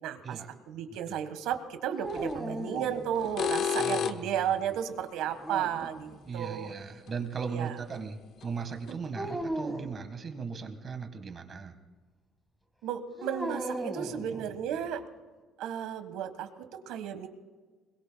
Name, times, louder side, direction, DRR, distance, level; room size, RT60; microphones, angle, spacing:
voice 1, 0.0-0.4 0.7-6.7 7.5-7.7 12.8-15.0 15.6-17.3, right 9 dB, 85° right, 9 dB, 1.5 m, -33 dB
sound 1, 2.0-3.5 5.2-6.3 9.1-9.9 13.2-14.8, right 1 dB, ahead, 1.7 m, -37 dB
sound 2, 2.1-2.3 3.2-4.4 7.1-7.2 7.9-8.0 8.4-8.5 8.9-9.0, left 8 dB, 50° left, 0.7 m, -30 dB
sound 3, 3.2-3.8 5.8-6.3 8.9-10.0 13.5-13.8, right 7 dB, 70° right, 3.3 m, -53 dB
voice 2, 3.8-4.4 6.2-11.7, right 5 dB, 30° right, 7 dB, 1.5 m, -38 dB
25.5 x 21.5 x 2.3 m, 1.4 s
cardioid pair, 165°, 0 cm